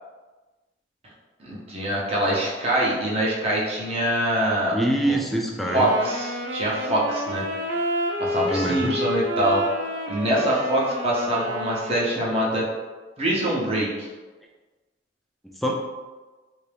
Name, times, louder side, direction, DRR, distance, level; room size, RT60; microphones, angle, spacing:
voice 1, 1.4-4.7 5.1-5.2 5.7-7.4 8.2-9.6 10.1-12.6 13.2-14.1, right 1 dB, 35° right, -5 dB, 0.8 m, -24 dB
voice 2, 4.7-5.9 8.4-9.0 15.6-15.7, right 1 dB, ahead, -1 dB, 0.4 m, -24 dB
Wind instrument woodwind instrument, 5.6-12.6, equal, 85° right, 0.5 m, -29 dB
3.4 x 2.6 x 3.4 m, 1.3 s
head